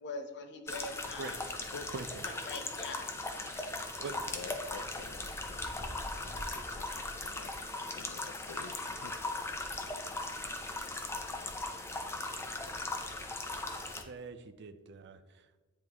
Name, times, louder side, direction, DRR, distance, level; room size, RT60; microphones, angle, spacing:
voice 1, 0.0-1.4 2.2-3.1 12.1-12.2, left 3 dB, 55° left, 5 dB, 0.7 m, -42 dB
sound 1, 0.7-14.0, left 2 dB, 10° left, 0.5 m, -39 dB
voice 2, 1.2-1.6 1.9-2.3 3.4-4.1 13.9-15.6, right 4 dB, 55° right, 9 dB, 0.5 m, -45 dB
voice 3, 4.1-7.5 7.9-9.1, left 5 dB, 85° left, 7 dB, 0.4 m, -49 dB
9.5 x 3.5 x 2.9 m, 1.3 s
head